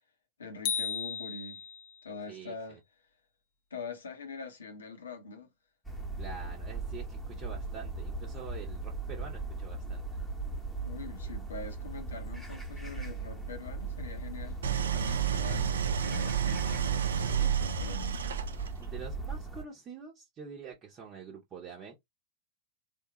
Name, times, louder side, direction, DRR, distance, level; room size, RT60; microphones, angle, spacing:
voice 1, 0.4-1.6 2.0-2.8 3.7-5.5 10.8-18.2, left 3 dB, 70° left, 0.8 m, -44 dB
sound 1, 0.6-2.0, left 7 dB, 45° left, 0.6 m, -35 dB
voice 2, 2.3-2.8 6.2-10.1 18.7-21.9, right 5 dB, 30° right, 0.8 m, -46 dB
sound 2, 5.8-19.6, right 3 dB, ahead, 1.1 m, -38 dB
Idling, 14.6-18.8, right 8 dB, 65° right, 0.4 m, -30 dB
3.5 x 2.3 x 2.9 m
figure-of-eight pair, 90°, 0 cm